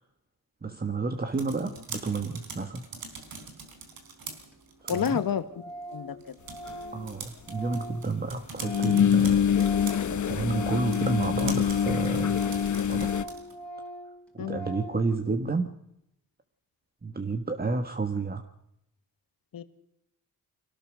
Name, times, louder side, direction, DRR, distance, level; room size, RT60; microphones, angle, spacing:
voice 1, 0.6-2.9 4.8-5.2 6.9-9.5 10.0-12.4 12.9-13.1 14.3-15.8 17.0-18.5, right 3 dB, 25° right, 7 dB, 1.6 m, -31 dB
sound 1, 1.1-13.6, right 4 dB, 80° right, 4.3 m, -44 dB
Organ, 3.9-4.0 4.2-4.3 4.5-4.6 4.9-5.3 5.5-9.1 9.4-15.1, right 1 dB, 5° left, 4.4 m, -42 dB
voice 2, 4.9-5.4 5.9-6.4 14.4-14.6 19.5-19.6, left 8 dB, 75° left, 11 dB, 1.7 m, -29 dB
sound 2, 6.7-6.8 8.6-13.2, left 8 dB, 55° left, 1.1 m, -25 dB
25.5 x 18.0 x 6.4 m, 0.80 s
cardioid pair, 80°, 35 cm